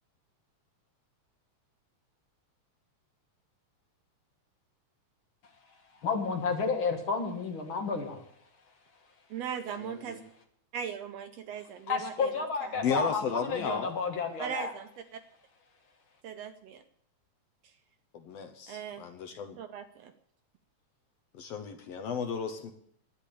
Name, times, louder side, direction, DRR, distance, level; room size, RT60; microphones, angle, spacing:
voice 1, 6.0-8.2 9.8-10.2 11.9-14.7, left 4 dB, 45° left, 3 dB, 2.2 m, -31 dB
voice 2, 9.3-10.2 10.7-12.9 14.4-15.2 16.2-16.8 18.7-19.0 19.6-20.1, right 8 dB, 70° right, 8 dB, 1.7 m, -39 dB
voice 3, 12.8-13.9 18.1-19.6 21.4-22.7, left 6 dB, 65° left, 7 dB, 1.8 m, -34 dB
11.5 x 9.6 x 8.5 m, 0.68 s
omnidirectional pair, 3.4 m